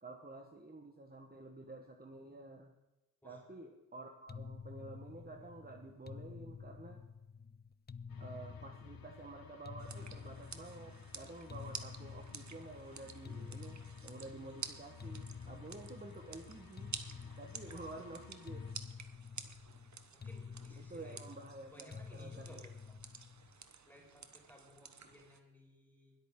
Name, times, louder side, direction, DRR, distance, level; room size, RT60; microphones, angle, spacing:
voice 1, 0.0-2.7 3.2-7.0 8.2-16.9 17.4-18.6 20.8-22.6, right 2 dB, 25° right, 2 dB, 1.3 m, -50 dB
voice 2, 3.2-3.6 17.7-17.9 20.1-21.3 21.6-23.0 23.9-26.1, left 1 dB, 5° left, -1 dB, 4.6 m, -60 dB
sound 1, 4.3-23.6, left 5 dB, 30° left, 0.4 m, -50 dB
sound 2, 8.1-18.7, left 5 dB, 75° left, 1.2 m, -57 dB
sound 3, 9.8-25.4, right 6 dB, 55° right, 1.0 m, -52 dB
20.5 x 8.4 x 3.7 m, 1.0 s
wide cardioid pair, 70°, 35 cm